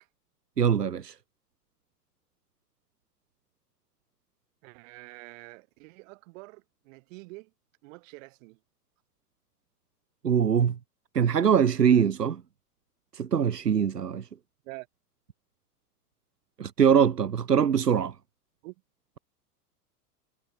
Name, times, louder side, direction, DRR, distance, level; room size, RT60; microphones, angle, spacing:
voice 1, 0.6-1.2 10.2-10.8 11.1-12.4 13.1-14.3 16.6-18.1, right 7 dB, 90° right, 1.0 m, -23 dB
voice 2, 4.6-7.5 7.8-8.6 14.6-14.9 18.6-18.7, right 25 dB, 55° right, 6.5 m, -46 dB
figure-of-eight pair, 90°, 46 cm